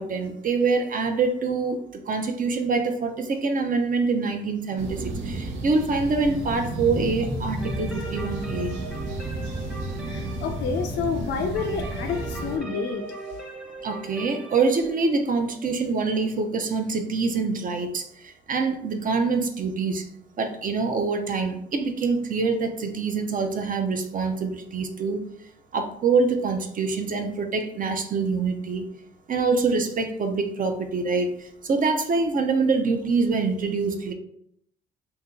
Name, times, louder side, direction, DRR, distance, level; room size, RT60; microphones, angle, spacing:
voice 1, 0.0-1.8 2.1-8.7 13.8-18.1 18.5-20.0 20.4-25.2 25.7-28.9 29.3-31.3 31.6-34.1, right 4 dB, 45° right, 6 dB, 0.5 m, -25 dB
sound 1, 4.8-12.6, right 1 dB, 75° right, 0.7 m, -32 dB
sound 2, 7.6-17.3, right 3 dB, 5° right, 0.7 m, -40 dB
voice 2, 10.0-13.0, left 6 dB, 65° left, 3 dB, 0.4 m, -29 dB
2.9 x 2.7 x 3.5 m, 0.73 s
cardioid pair, 90°, 20 cm